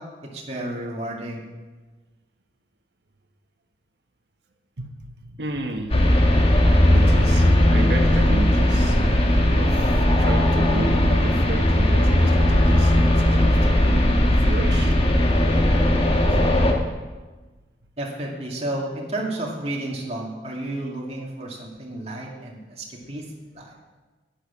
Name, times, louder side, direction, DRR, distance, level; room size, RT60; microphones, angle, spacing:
voice 1, 0.2-1.5 18.0-23.3 23.5-23.7, right 1 dB, 35° right, -2 dB, 2.4 m, -31 dB
voice 2, 4.8-6.0 6.9-15.0 16.3-16.4, right 2 dB, 65° right, 3 dB, 1.4 m, -33 dB
sound 1, 5.9-16.7, left 1 dB, 30° left, 1.4 m, -18 dB
10.0 x 10.0 x 7.2 m, 1.3 s
head